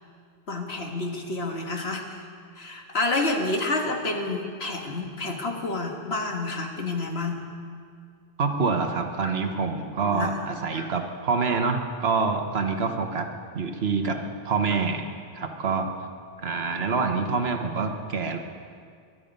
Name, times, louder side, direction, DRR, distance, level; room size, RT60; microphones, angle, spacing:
voice 1, 0.5-2.2 2.6-7.5 10.0-10.4 10.7-10.9, left 2 dB, 80° left, 2 dB, 1.9 m, -29 dB
voice 2, 8.4-13.3 13.5-14.2 14.4-15.1 15.3-15.9 16.4-18.4, right 4 dB, 75° right, 5 dB, 1.5 m, -26 dB
22.5 x 11.5 x 5.4 m, 2.1 s
omnidirectional pair, 1.1 m